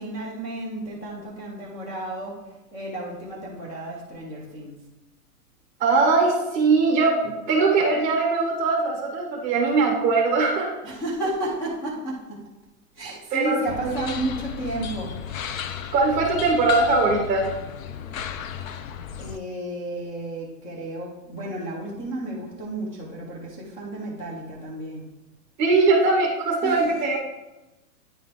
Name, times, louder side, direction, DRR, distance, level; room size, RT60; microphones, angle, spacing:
voice 1, 0.0-2.3 2.7-4.8 10.8-12.4 12.9-15.1 19.2-25.1 26.6-26.8, right 1 dB, 20° left, -5 dB, 0.7 m, -32 dB
voice 2, 5.8-10.7 13.3-14.2 15.9-17.5 25.6-27.2, right 3 dB, 15° right, -1 dB, 1.2 m, -21 dB
sound 1, 13.7-19.4, left 8 dB, 60° left, 0.6 m, -33 dB
9.7 x 3.9 x 3.6 m, 1.0 s
hypercardioid pair, 170°, 47 cm